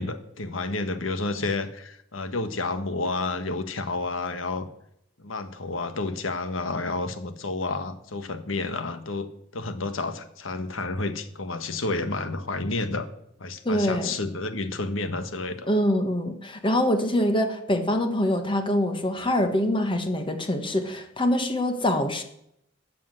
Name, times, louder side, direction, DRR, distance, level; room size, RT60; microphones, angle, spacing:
voice 1, 0.0-4.7 5.2-13.1 13.4-15.7, left 3 dB, 90° left, 9 dB, 1.4 m, -30 dB
voice 2, 13.6-14.1 15.7-22.2, left 1 dB, 25° left, 6 dB, 1.5 m, -24 dB
13.5 x 7.4 x 7.8 m, 0.76 s
head